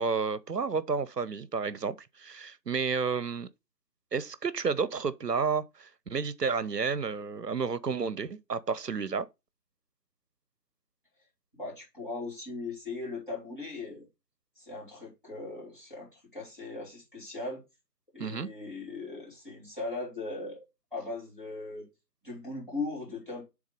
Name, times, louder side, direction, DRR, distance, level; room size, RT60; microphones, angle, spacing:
voice 1, 0.0-3.5 4.1-9.3 18.2-18.5, right 5 dB, 75° right, 0.7 m, -31 dB
voice 2, 11.5-14.1 14.6-17.6 18.1-20.6 20.9-21.9 22.2-23.4, left 3 dB, 30° left, 3.2 m, -39 dB
6.1 x 3.7 x 5.1 m
figure-of-eight pair, 180°, 50 cm